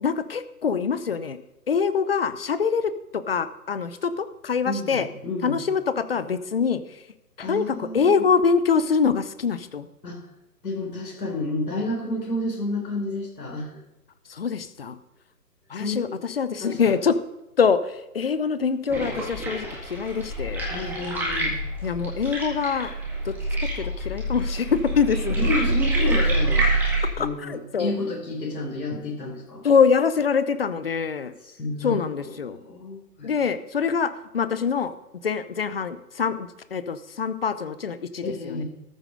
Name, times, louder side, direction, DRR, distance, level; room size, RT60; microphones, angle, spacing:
voice 1, 0.0-1.4 1.7-5.1 5.4-7.0 7.4-9.9 14.3-15.0 15.7-17.2 17.6-20.6 21.8-22.9 23.3-23.4 23.6-25.4 27.2-27.9 29.6-31.3 31.8-32.6 33.2-34.9 35.2-38.6, left 6 dB, 40° left, 13 dB, 0.6 m, -24 dB
voice 2, 4.6-5.6 7.4-8.2 10.0-10.2 10.6-13.7 15.8-16.1 16.6-16.9 20.7-21.6 25.4-26.7 27.2-29.6 31.4-33.3 38.2-38.6, left 2 dB, 80° left, 0 dB, 3.8 m, -30 dB
sound 1, 18.9-27.1, right 2 dB, 5° right, 1.7 m, -26 dB
13.5 x 7.6 x 5.2 m, 0.90 s
hypercardioid pair, 155°, 49 cm